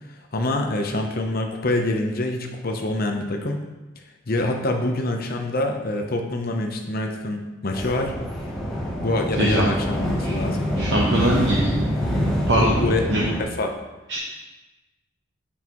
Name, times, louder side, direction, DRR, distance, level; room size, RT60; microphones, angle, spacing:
voice 1, 0.1-3.6 4.3-8.1 9.0-10.7 12.6-13.7, left 2 dB, 45° left, 3 dB, 0.8 m, -26 dB
sound 1, 7.7-13.4, equal, ahead, 1.0 m, -25 dB
voice 2, 10.8-11.7 12.5-12.8 13.1-13.3 14.1-14.2, right 1 dB, 55° right, -3 dB, 0.9 m, -21 dB
8.2 x 5.6 x 3.0 m, 1.1 s
head